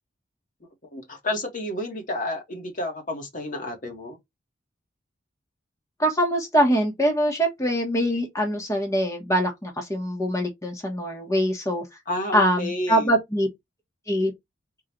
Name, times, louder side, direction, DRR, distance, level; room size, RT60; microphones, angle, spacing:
voice 1, 0.9-4.2 12.1-13.1, left 1 dB, 45° left, 1.2 m, -30 dB
voice 2, 6.0-11.8 12.3-13.5 14.1-14.3, equal, 15° left, 1.0 m, -23 dB
3.8 x 2.4 x 4.3 m
head